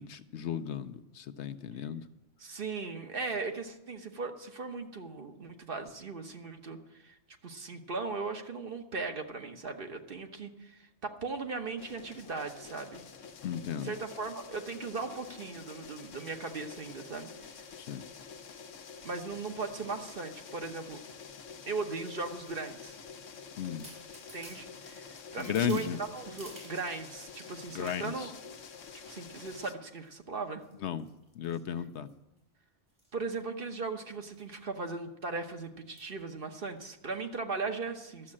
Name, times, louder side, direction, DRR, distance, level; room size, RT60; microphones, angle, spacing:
voice 1, 0.0-2.1 13.4-13.9 17.8-18.0 23.6-23.9 25.4-26.0 27.7-28.3 30.8-31.1 31.3-32.1, left 8 dB, 70° left, 10 dB, 0.9 m, -35 dB
voice 2, 2.4-7.2 7.4-13.0 13.8-17.3 19.0-21.0 21.7-23.0 24.3-28.3 29.1-30.6 33.1-38.3, right 4 dB, 50° right, 5 dB, 1.2 m, -38 dB
sound 1, 11.8-29.7, left 5 dB, 85° left, 1.3 m, -48 dB
sound 2, 20.9-21.2 22.0-23.0 23.4-23.5 23.8-27.0 27.4-28.8 29.3-29.5 29.8-30.2 30.6-32.4 32.9-33.1 33.4-33.5 33.7-33.9 34.3-34.5 34.9-35.0 36.0-36.2 36.8-36.9, right 1 dB, 90° right, 4.9 m, -54 dB
12.5 x 7.4 x 8.7 m, 0.92 s
omnidirectional pair, 1.2 m